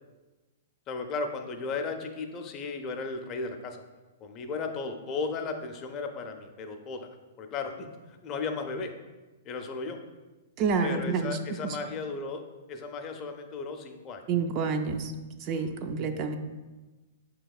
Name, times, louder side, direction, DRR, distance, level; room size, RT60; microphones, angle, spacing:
voice 1, 0.9-3.8 4.2-7.1 7.4-8.9 9.5-10.0 10.8-12.4 12.7-14.2 15.5-15.7, left 4 dB, 30° left, 5 dB, 0.4 m, -35 dB
voice 2, 10.6-11.4 11.6-11.8 14.3-15.1 15.4-16.4, right 5 dB, 40° right, 6 dB, 0.3 m, -28 dB
5.7 x 2.8 x 2.3 m, 1.2 s
hypercardioid pair, 125°, 0 cm